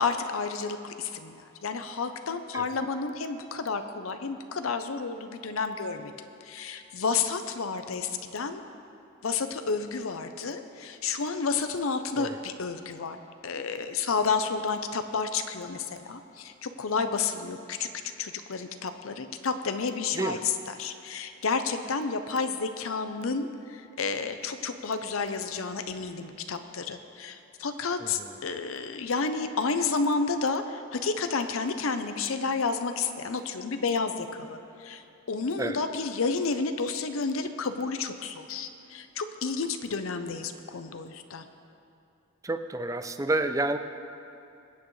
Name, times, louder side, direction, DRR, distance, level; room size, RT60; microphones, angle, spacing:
voice 1, 0.0-6.1 6.4-8.7 9.2-13.2 13.4-17.9 18.2-20.4 20.8-41.4, left 4 dB, 85° left, 8 dB, 0.7 m, -31 dB
voice 2, 28.0-28.4 35.6-35.8 42.4-43.8, right 2 dB, 15° right, 8 dB, 0.4 m, -29 dB
23.0 x 8.5 x 3.2 m, 2.8 s
head